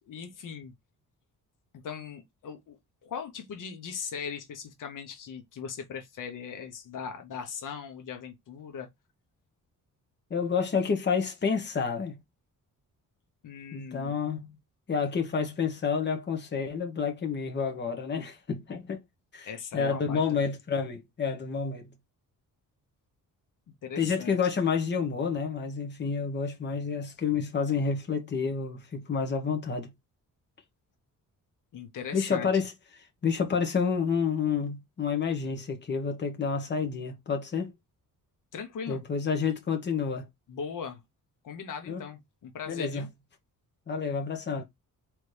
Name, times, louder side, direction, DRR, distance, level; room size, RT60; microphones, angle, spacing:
voice 1, 0.1-0.7 1.8-8.9 13.4-14.2 19.4-20.4 23.8-24.4 31.7-32.5 38.5-39.0 40.5-41.0 41.4-43.1, left 6 dB, 65° left, 0.9 m, -39 dB
voice 2, 10.3-12.1 13.7-14.6 14.9-19.0 19.3-19.5 19.7-21.9 24.0-29.9 32.1-32.7 33.2-37.7 38.9-40.3 41.9-42.0 42.7-43.1 43.9-44.6, left 6 dB, 30° left, 1.1 m, -29 dB
4.0 x 3.1 x 3.2 m
wide cardioid pair, 155°, 34 cm